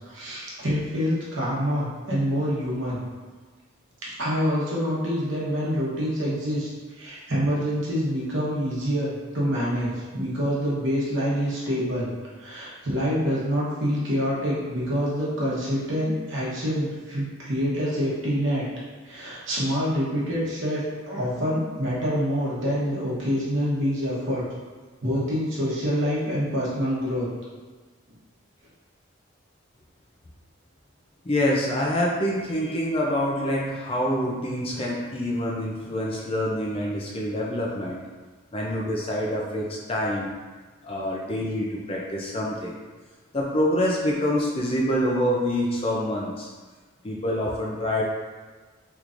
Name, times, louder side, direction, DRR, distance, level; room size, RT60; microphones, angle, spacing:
voice 1, 0.0-3.0 4.2-6.7 6.9-12.1 12.4-18.7 19.0-24.4 25.0-27.3, equal, 60° right, -7 dB, 1.0 m, -26 dB
voice 2, 31.2-38.0 38.5-40.3 40.8-42.8 43.3-46.5 47.0-48.0, left 1 dB, 25° left, -3 dB, 0.4 m, -26 dB
3.6 x 3.0 x 2.5 m, 1.4 s
head